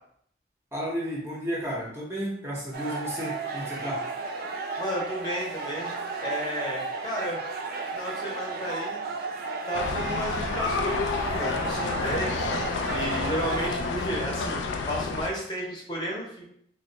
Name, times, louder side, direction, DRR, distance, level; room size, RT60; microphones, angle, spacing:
voice 1, 0.7-4.0, equal, 15° right, -4 dB, 0.6 m, -32 dB
sound 1, 2.7-13.7, right 4 dB, 55° right, 0.4 m, -34 dB
voice 2, 4.8-7.5 7.9-9.0 9.7-12.3 12.8-16.4, equal, 25° left, -3 dB, 0.7 m, -33 dB
sound 2, 9.7-15.3, left 4 dB, 85° left, 0.3 m, -30 dB
2.9 x 2.1 x 3.8 m, 0.69 s
head